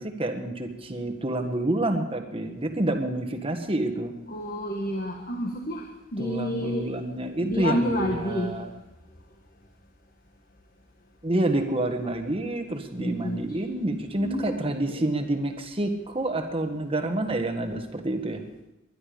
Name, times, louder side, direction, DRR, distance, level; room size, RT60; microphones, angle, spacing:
voice 1, 0.0-4.1 6.2-8.7 11.2-18.4, right 1 dB, 25° right, 5 dB, 1.5 m, -28 dB
voice 2, 4.3-5.8 6.1-6.9 7.4-8.5 13.0-13.4 14.2-15.1, equal, 45° left, 1 dB, 1.6 m, -29 dB
20.5 x 11.5 x 5.1 m, 0.94 s
head